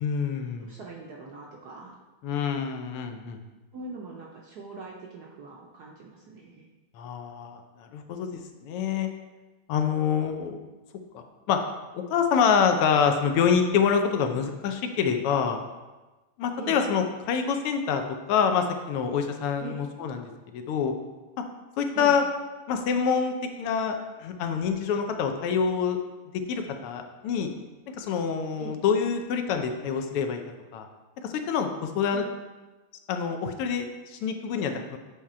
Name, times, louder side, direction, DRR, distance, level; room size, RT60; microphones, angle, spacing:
voice 1, 0.0-0.8 2.2-3.4 7.0-9.1 9.7-10.6 11.1-11.6 11.9-15.6 16.4-18.0 18.3-20.9 21.8-22.2 22.7-26.0 26.5-27.5 28.0-30.4 30.7-30.9 31.2-32.2 33.1-35.0, left 6 dB, 85° left, 5 dB, 1.6 m, -26 dB
voice 2, 0.6-1.9 3.7-6.7 16.6-16.8 19.6-19.8 21.9-22.2 28.6-28.8 32.1-32.3, right 4 dB, 70° right, -2 dB, 0.9 m, -42 dB
8.8 x 3.6 x 4.2 m, 1.2 s
omnidirectional pair, 2.4 m